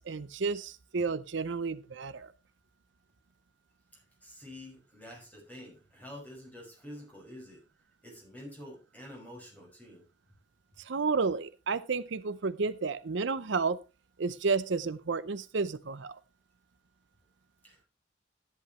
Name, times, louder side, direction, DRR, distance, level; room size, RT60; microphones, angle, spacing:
voice 1, 0.0-2.3 10.9-13.8 14.2-16.2, right 4 dB, 65° right, 0.6 m, -31 dB
voice 2, 3.9-7.6 8.0-10.0 17.6-17.9, left 1 dB, 10° left, 5.9 m, -48 dB
14.0 x 10.5 x 3.1 m
head